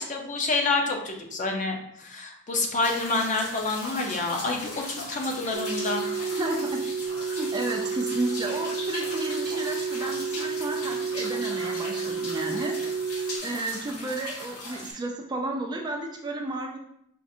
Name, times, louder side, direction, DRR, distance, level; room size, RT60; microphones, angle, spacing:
voice 1, 0.0-6.0, left 3 dB, 35° left, 2 dB, 0.6 m, -28 dB
sound 1, 2.8-14.9, left 2 dB, 75° left, 1.2 m, -38 dB
sound 2, 5.5-13.4, right 5 dB, 75° right, 0.7 m, -31 dB
voice 2, 6.4-6.8 7.3-12.9 13.4-16.8, right 2 dB, 20° right, 1 dB, 0.4 m, -32 dB
5.9 x 2.5 x 2.6 m, 0.75 s
head